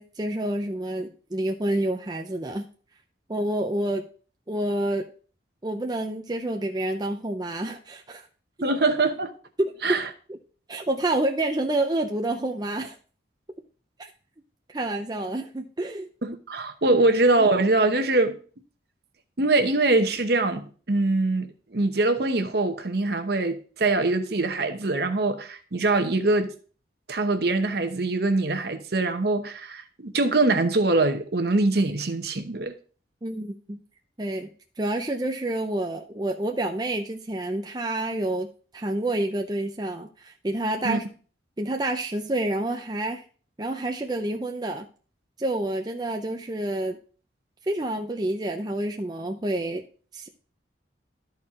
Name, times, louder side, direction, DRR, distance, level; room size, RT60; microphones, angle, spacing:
voice 1, 0.0-2.7 3.3-4.1 4.5-5.1 5.6-8.3 8.6-8.8 9.6-10.0 10.3-10.4 10.7-13.0 14.0-14.1 14.7-16.1 16.9-17.0 33.2-33.8 34.2-34.5 34.8-38.5 38.7-41.1 41.6-43.2 43.6-44.9 45.4-47.0 47.7-49.8 50.1-50.3, right 1 dB, 20° right, 0.5 m, -28 dB
voice 2, 8.6-9.3 9.8-10.1 16.2-18.4 19.4-26.5 27.1-32.7 40.8-41.0, right 2 dB, 55° right, 0.9 m, -23 dB
12.5 x 4.4 x 3.7 m
head